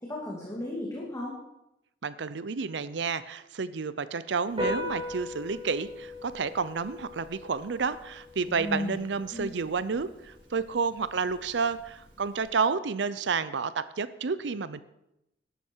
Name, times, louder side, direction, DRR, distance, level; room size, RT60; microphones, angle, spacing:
voice 1, 0.0-1.4 8.5-9.0 9.3-9.5, left 1 dB, 20° left, -4 dB, 2.2 m, -34 dB
voice 2, 2.0-14.8, right 5 dB, 75° right, 15 dB, 0.6 m, -30 dB
Piano, 4.5-12.5, left 1 dB, 30° right, 5.7 m, -40 dB
12.0 x 12.0 x 4.6 m, 0.86 s
head